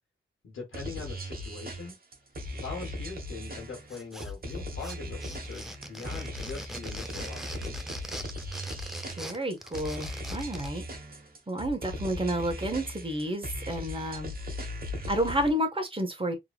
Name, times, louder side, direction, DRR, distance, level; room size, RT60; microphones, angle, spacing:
voice 1, 0.4-2.0 2.5-7.8, left 4 dB, 80° left, 1.3 m, -42 dB
sound 1, 0.7-15.5, left 1 dB, 50° right, 1.3 m, -38 dB
sound 2, 3.9-4.5 4.8-10.8, equal, ahead, 0.7 m, -42 dB
voice 2, 9.2-10.8 11.5-14.3 15.1-16.3, right 1 dB, 25° right, 1.5 m, -30 dB
3.7 x 3.1 x 2.4 m
cardioid pair, 50°, 20 cm